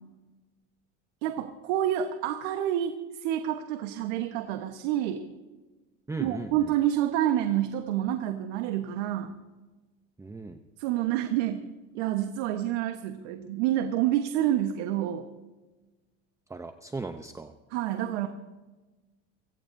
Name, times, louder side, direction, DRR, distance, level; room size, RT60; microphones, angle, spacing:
voice 1, 1.2-5.3 6.2-9.4 10.8-11.7 11.9-15.3 17.7-18.3, right 11 dB, 85° right, 6 dB, 1.3 m, -28 dB
voice 2, 6.1-6.7 10.2-10.6 16.5-17.5, right 3 dB, 10° right, 7 dB, 0.7 m, -37 dB
25.5 x 16.0 x 2.7 m, 1.2 s
supercardioid pair, 120°, 35 cm